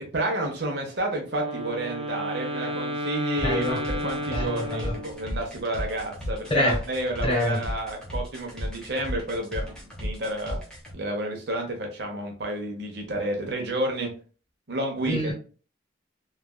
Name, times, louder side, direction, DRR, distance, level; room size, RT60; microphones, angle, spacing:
voice 1, 0.0-10.6 10.9-14.1 14.7-15.3, right 1 dB, 55° right, 0.9 m, -30 dB
Wind instrument woodwind instrument, 1.3-5.4, equal, 30° right, 0.5 m, -32 dB
voice 2, 3.4-3.8 4.3-5.0 6.5-6.8 7.2-7.6 15.0-15.3, left 1 dB, 30° left, 1.0 m, -26 dB
sound 1, 3.4-10.9, equal, 5° left, 0.9 m, -34 dB
3.2 x 2.4 x 2.3 m
head